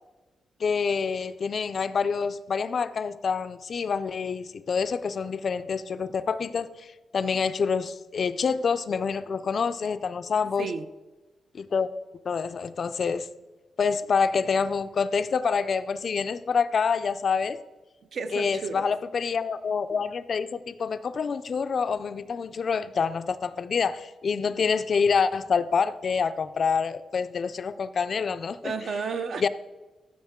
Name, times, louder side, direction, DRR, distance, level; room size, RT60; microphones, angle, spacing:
voice 1, 0.6-6.9 7.1-10.7 11.5-11.9 12.3-13.3 13.8-17.6 18.3-28.7 29.4-29.5, left 5 dB, 40° left, 12 dB, 0.4 m, -27 dB
voice 2, 10.6-10.9 18.1-18.9 28.6-29.5, right 5 dB, 50° right, 11 dB, 0.5 m, -32 dB
14.5 x 7.2 x 3.6 m, 1.2 s
wide cardioid pair, 175°, 0 cm